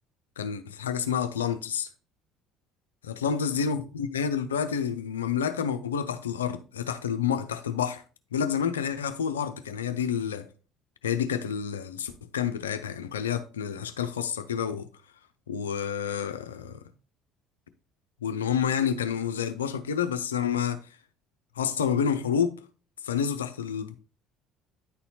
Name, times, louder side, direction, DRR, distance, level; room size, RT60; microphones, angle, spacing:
voice 1, 0.4-1.9 3.1-8.0 8.3-10.5 11.0-14.9 15.5-16.8 18.2-20.8 21.6-22.6 23.0-23.9, left 7 dB, 80° left, 0.6 m, -29 dB
9.9 x 4.2 x 4.2 m
figure-of-eight pair, 60°, 0 cm